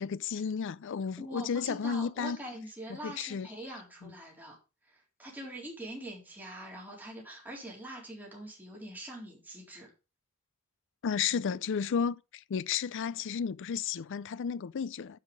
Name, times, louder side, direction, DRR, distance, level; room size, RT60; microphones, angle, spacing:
voice 1, 0.0-2.4 3.0-3.5 4.0-4.1 11.0-15.2, left 6 dB, 60° left, 0.4 m, -33 dB
voice 2, 1.2-4.6 4.8-9.9, right 1 dB, 10° right, 3.9 m, -44 dB
9.9 x 5.7 x 5.1 m
head